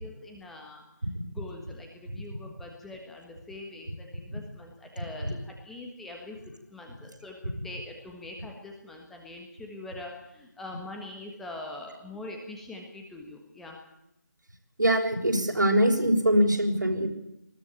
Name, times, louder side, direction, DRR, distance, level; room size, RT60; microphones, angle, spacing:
voice 1, 0.0-13.8, left 2 dB, ahead, 1 dB, 1.4 m, -43 dB
voice 2, 14.8-17.1, right 1 dB, 75° right, 2 dB, 6.4 m, -23 dB
20.5 x 15.0 x 8.6 m, 0.83 s
figure-of-eight pair, 165°, 10 cm